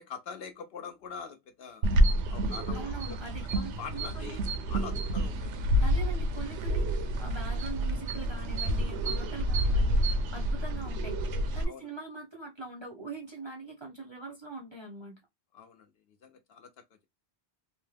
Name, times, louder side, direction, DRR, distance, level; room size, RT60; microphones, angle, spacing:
voice 1, 0.0-1.9 2.3-3.2 3.8-5.7 11.6-11.9 15.5-15.9 16.2-16.8, left 6 dB, 65° left, 0.8 m, -44 dB
sound 1, 1.8-11.6, equal, 85° right, 0.9 m, -28 dB
voice 2, 2.7-4.4 5.8-10.0 10.3-11.2 11.5-15.2, right 3 dB, 30° right, 0.6 m, -42 dB
2.8 x 2.1 x 3.2 m
omnidirectional pair, 1.2 m